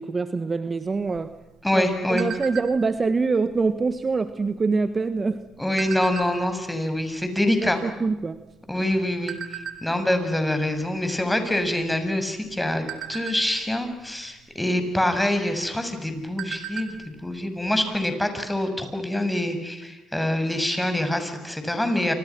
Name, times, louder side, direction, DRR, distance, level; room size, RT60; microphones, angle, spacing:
voice 1, 0.0-1.3 1.7-1.8 2.1-5.4 7.5-8.4, right 4 dB, 35° right, 11 dB, 1.5 m, -25 dB
sound 1, 1.0-3.0 3.5-3.7 4.0-4.4 5.1-6.6 7.2-7.3 7.5-8.8 9.3-9.8 10.3-10.5 10.9-11.1 11.5-12.0 12.5-13.9 15.0-15.1 15.5-15.6 16.0-17.0 17.3-17.4 17.8-17.9, right 9 dB, 75° right, 4.0 m, -36 dB
voice 2, 1.6-2.3 5.6-7.8 8.7-22.1, left 1 dB, 10° left, 7 dB, 7.3 m, -25 dB
29.0 x 27.5 x 6.2 m, 0.95 s
supercardioid pair, 65°, 0 cm